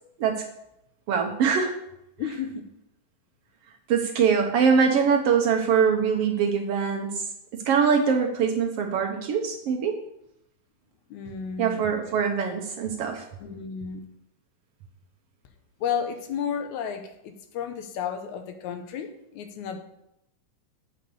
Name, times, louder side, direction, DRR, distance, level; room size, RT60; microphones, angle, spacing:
voice 1, 1.1-1.7 2.2-2.4 3.9-7.2 7.5-10.0 11.6-13.3, right 6 dB, 70° right, 3 dB, 1.6 m, -23 dB
voice 2, 2.2-2.7 11.1-11.9 13.4-14.0 15.8-19.8, left 7 dB, 85° left, 7 dB, 2.3 m, -32 dB
8.3 x 5.1 x 6.9 m, 0.82 s
omnidirectional pair, 3.3 m